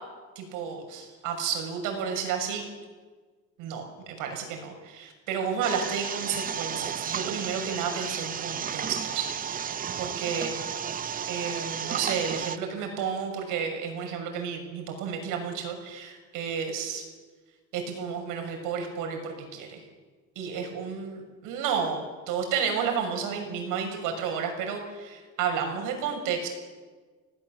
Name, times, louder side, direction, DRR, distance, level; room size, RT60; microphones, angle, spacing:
voice 1, 0.3-2.7 3.6-9.7 10.0-10.5 11.3-17.0 17.7-19.8 20.3-26.5, right 6 dB, 85° right, 4 dB, 6.4 m, -32 dB
sound 1, 5.6-12.6, right 8 dB, 25° right, 0.8 m, -33 dB
27.5 x 18.5 x 7.6 m, 1.4 s
cardioid pair, 165°, 31 cm